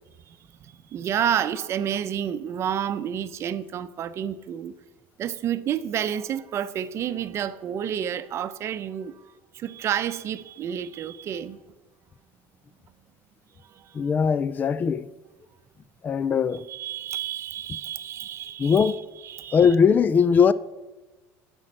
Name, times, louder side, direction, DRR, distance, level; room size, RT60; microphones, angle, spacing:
voice 1, 0.3-4.7 5.2-11.6 13.6-14.0 16.7-19.7, right 9 dB, 45° right, 0.7 m, -30 dB
voice 2, 13.9-15.1 16.0-16.7 18.6-19.0 19.5-20.5, left 6 dB, 25° left, 0.4 m, -20 dB
9.5 x 6.3 x 7.7 m
supercardioid pair, 115°, 7 cm